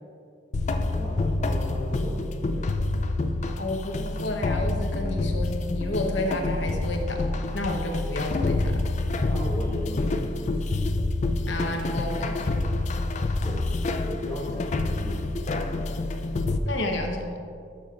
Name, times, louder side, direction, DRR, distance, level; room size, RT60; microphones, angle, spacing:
sound 1, 0.5-16.6, left 2 dB, 40° left, 0.3 m, -27 dB
voice 1, 0.7-2.8 9.2-10.9 13.4-13.7 14.0-15.4, left 1 dB, 15° left, -6 dB, 1.3 m, -37 dB
voice 2, 3.6-7.3 7.5-8.8 11.5-12.5 16.6-17.3, left 1 dB, 70° left, 2 dB, 0.9 m, -31 dB
12.5 x 6.2 x 2.5 m, 2.3 s
head